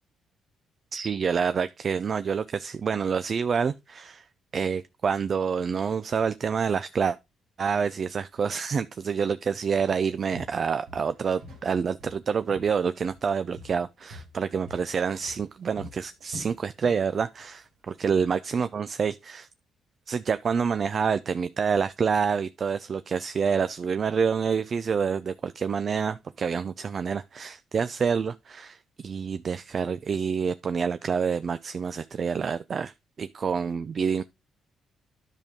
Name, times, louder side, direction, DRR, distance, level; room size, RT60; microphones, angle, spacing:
voice 1, 0.9-4.2 4.5-7.2 7.6-19.5 20.1-32.9 33.2-34.2, right 6 dB, 45° right, 0.4 m, -27 dB
Walk footsteps, 9.7-10.0 10.3-11.7 12.0-13.3 13.6-17.1 17.4-17.6 18.1-18.2, equal, 85° right, 3.0 m, -46 dB
10.5 x 5.3 x 3.6 m
cardioid pair, 90°, 0 cm